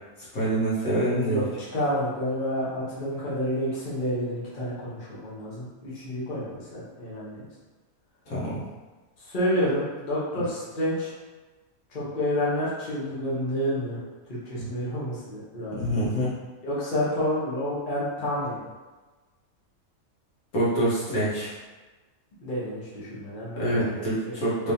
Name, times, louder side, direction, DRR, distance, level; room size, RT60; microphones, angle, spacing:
voice 1, 0.3-1.5 8.3-8.6 14.6-14.7 15.8-16.3 20.5-21.5 23.6-24.7, right 1 dB, 75° left, -9 dB, 1.7 m, -26 dB
voice 2, 1.3-7.4 9.2-11.1 11.9-14.0 14.3-15.9 16.6-18.7 22.4-24.7, equal, 40° left, -8 dB, 1.1 m, -29 dB
3.6 x 3.2 x 2.7 m, 1.3 s
omnidirectional pair, 1.5 m